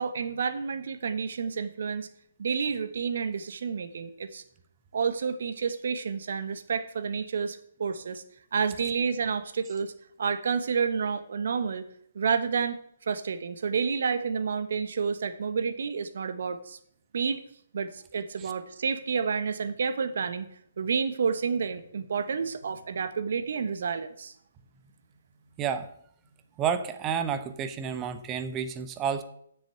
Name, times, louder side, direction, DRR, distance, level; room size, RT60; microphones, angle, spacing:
voice 1, 0.0-2.1 2.4-4.4 4.9-8.2 8.5-9.9 10.2-11.9 12.1-12.8 13.1-16.8 17.1-17.4 17.7-20.5 20.8-24.3, right 6 dB, 65° right, 11 dB, 1.2 m, -29 dB
voice 2, 26.6-29.2, right 7 dB, 20° right, 10 dB, 1.0 m, -30 dB
7.5 x 7.0 x 8.2 m, 0.67 s
hypercardioid pair, 140°, 0 cm